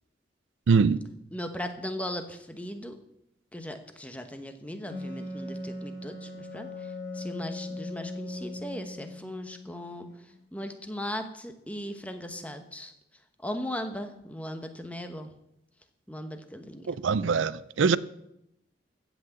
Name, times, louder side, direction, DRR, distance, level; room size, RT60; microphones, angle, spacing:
voice 1, 0.7-1.1 16.9-18.0, right 5 dB, 85° right, 0.5 m, -23 dB
voice 2, 1.3-3.0 3.5-6.7 7.1-10.1 10.5-12.9 13.4-15.3 16.1-16.9, left 1 dB, 5° left, 1.0 m, -38 dB
Wind instrument woodwind instrument, 4.9-10.3, left 2 dB, 55° left, 3.4 m, -39 dB
15.0 x 6.1 x 7.9 m
head